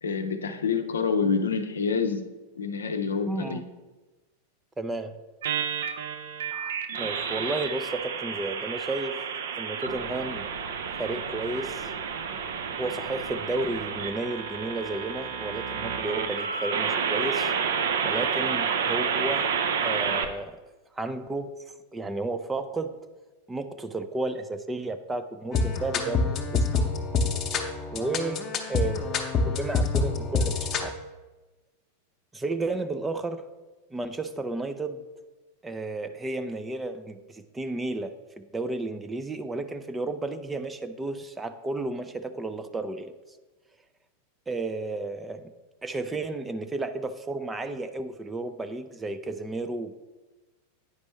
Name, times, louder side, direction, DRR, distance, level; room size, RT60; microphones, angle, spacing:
voice 1, 0.0-2.3 2.6-3.7, left 5 dB, 70° left, 6 dB, 0.6 m, -27 dB
voice 2, 3.3-3.6 4.8-5.2 7.0-9.1 9.6-10.5 11.0-11.9 12.7-17.5 18.0-19.5 19.8-20.6 20.9-22.9 23.5-26.8 27.9-30.9 32.3-33.5 33.9-35.0 35.6-38.2 38.5-43.1 44.5-45.5 45.8-49.9, right 2 dB, 10° right, 9 dB, 0.4 m, -32 dB
sound 1, 5.4-20.3, right 6 dB, 60° right, 0.5 m, -30 dB
sound 2, 25.5-30.9, left 4 dB, 30° left, 0.8 m, -27 dB
9.4 x 5.2 x 3.2 m, 1.2 s
figure-of-eight pair, 90°, 0 cm